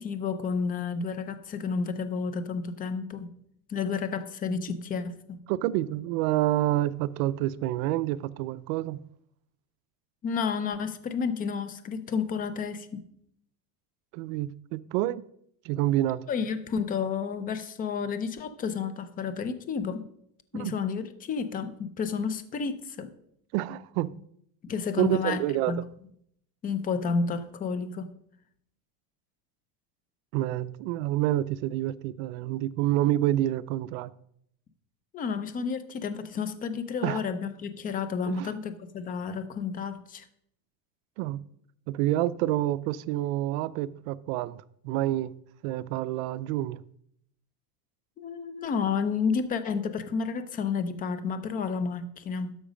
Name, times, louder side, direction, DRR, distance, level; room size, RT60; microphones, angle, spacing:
voice 1, 0.0-3.3 3.7-5.4 10.2-13.1 16.3-20.1 20.5-23.1 24.6-25.8 26.6-28.1 35.1-40.2 48.2-52.6, left 5 dB, 20° left, 0.5 m, -31 dB
voice 2, 5.5-9.0 14.1-15.2 15.6-16.3 20.5-20.8 23.5-24.2 25.0-25.8 30.3-34.1 37.0-37.2 38.3-38.5 41.2-41.4 41.9-45.3 45.6-46.8, right 14 dB, 65° right, 0.5 m, -28 dB
12.5 x 5.1 x 5.1 m
cardioid pair, 150°, 44 cm